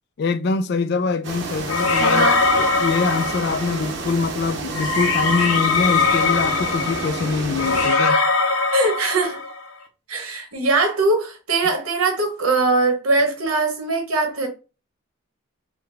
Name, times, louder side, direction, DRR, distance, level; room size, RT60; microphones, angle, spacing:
voice 1, 0.2-2.3 2.6-8.2, left 4 dB, 50° left, 0.3 m, -24 dB
sound 1, 1.2-7.9, right 3 dB, 55° right, 0.7 m, -30 dB
sound 2, 1.7-3.9 4.7-9.6, left 4 dB, 85° left, 0.6 m, -21 dB
voice 2, 2.0-2.4 8.7-9.4 10.1-14.5, right 3 dB, 85° right, 1.1 m, -21 dB
3.8 x 2.1 x 3.3 m
head